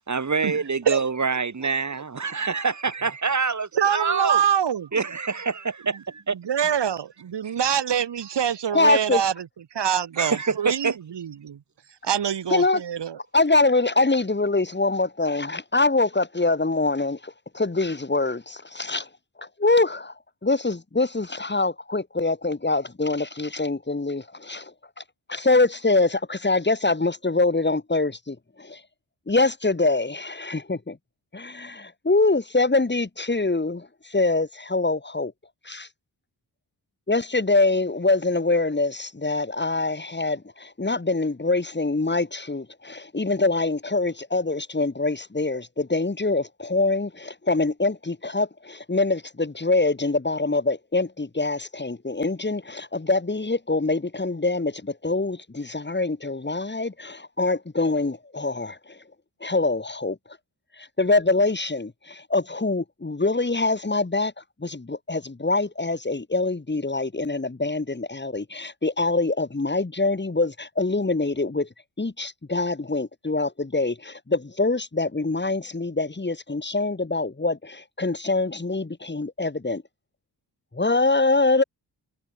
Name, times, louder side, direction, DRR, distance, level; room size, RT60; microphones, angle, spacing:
voice 1, 0.1-4.4 4.9-6.4 10.2-11.0, right 5 dB, 45° right, 3.8 m, -26 dB
voice 2, 3.7-4.9 6.3-9.5 9.7-11.6 12.0-13.2, right 8 dB, 90° right, 4.6 m, -25 dB
voice 3, 8.7-9.2 12.5-12.8 13.3-19.1 19.4-20.1 20.4-24.7 25.3-28.8 29.3-31.0 31.3-35.3 35.7-35.9 37.1-58.8 59.4-60.2 61.0-64.3 64.6-71.7 72.0-79.8 80.7-81.6, left 3 dB, 25° left, 4.4 m, -24 dB
wide cardioid pair, 85°, 41 cm